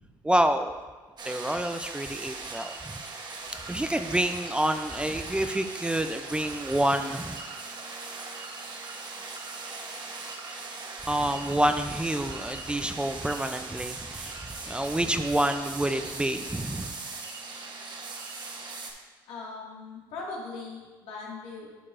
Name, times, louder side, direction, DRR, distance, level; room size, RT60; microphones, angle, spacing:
voice 1, 0.2-0.8 1.2-2.8 3.7-7.4 11.1-16.9, right 1 dB, 10° right, 8 dB, 0.4 m, -28 dB
sound 1, 1.2-18.9, right 3 dB, 45° right, 1.0 m, -39 dB
voice 2, 19.3-21.7, left 3 dB, 75° left, -3 dB, 2.0 m, -39 dB
11.0 x 4.6 x 2.5 m, 1.3 s
supercardioid pair, 70°, 10 cm